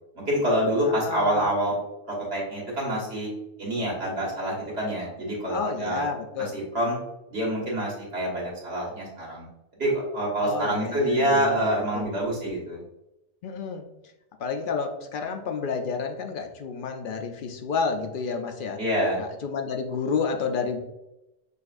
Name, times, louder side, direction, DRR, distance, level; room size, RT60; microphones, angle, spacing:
voice 1, 0.1-1.8 2.3-3.3 3.6-6.0 6.4-7.0 7.3-9.5 9.8-12.8 18.8-19.2, right 1 dB, 85° right, -4 dB, 1.7 m, -26 dB
voice 2, 0.8-1.5 5.5-6.6 10.4-12.1 13.4-13.9 14.4-18.8 19.2-20.8, left 5 dB, 65° left, 5 dB, 0.6 m, -30 dB
6.4 x 2.5 x 2.4 m, 0.93 s
omnidirectional pair, 1.0 m